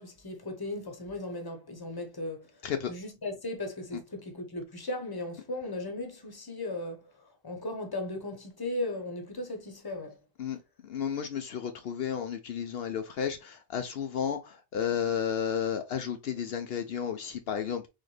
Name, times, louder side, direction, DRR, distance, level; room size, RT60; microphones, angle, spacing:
voice 1, 0.0-2.5 2.9-10.2, left 2 dB, 25° left, 1.0 m, -37 dB
voice 2, 10.8-17.8, left 8 dB, 70° left, 0.8 m, -32 dB
4.3 x 3.7 x 3.2 m
omnidirectional pair, 1.1 m